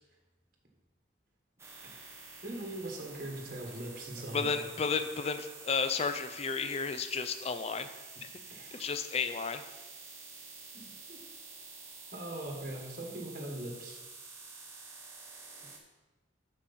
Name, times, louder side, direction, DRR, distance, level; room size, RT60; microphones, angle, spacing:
sound 1, 1.6-15.8, right 4 dB, 15° right, 0.8 m, -49 dB
voice 1, 2.4-4.6 8.5-9.0 10.7-11.2 12.1-14.0, right 1 dB, 45° right, 0 dB, 1.4 m, -41 dB
voice 2, 4.3-7.9 8.2-8.3 8.7-9.6, left 5 dB, 30° left, 9 dB, 0.4 m, -32 dB
7.6 x 6.3 x 4.2 m, 1.2 s
head